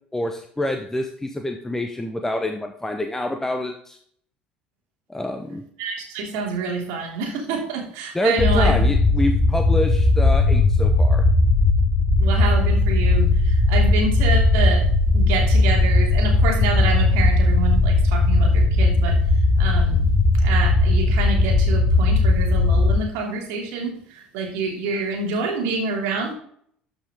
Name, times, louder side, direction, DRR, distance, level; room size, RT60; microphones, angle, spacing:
voice 1, 0.1-4.0 5.1-5.6 8.1-11.3, left 1 dB, 10° left, 4 dB, 1.0 m, -26 dB
voice 2, 5.8-8.9 12.2-14.9 15.1-20.1 20.3-26.3, right 4 dB, 60° right, 1 dB, 2.9 m, -27 dB
sound 1, 8.4-23.0, left 2 dB, 25° left, 2.3 m, -18 dB
13.0 x 6.0 x 3.7 m, 0.62 s
figure-of-eight pair, 60°, 5 cm